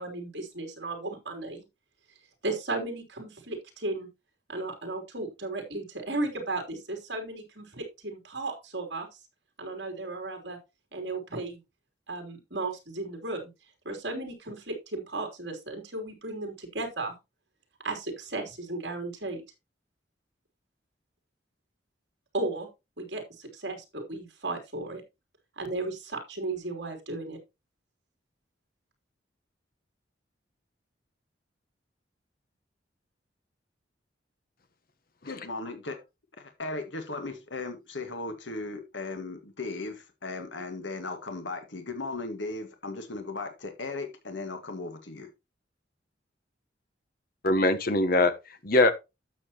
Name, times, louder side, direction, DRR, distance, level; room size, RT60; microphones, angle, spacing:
voice 1, 0.0-1.6 2.4-4.1 4.5-9.1 9.6-10.6 10.9-11.6 12.1-13.5 13.8-17.2 17.8-19.4 22.3-22.7 23.0-25.0 25.6-27.4, right 2 dB, 65° right, 3.4 m, -35 dB
voice 2, 35.3-36.0 36.4-45.3, left 3 dB, 80° left, 1.9 m, -37 dB
voice 3, 47.4-48.9, left 2 dB, 50° left, 1.1 m, -22 dB
12.0 x 7.3 x 2.9 m
head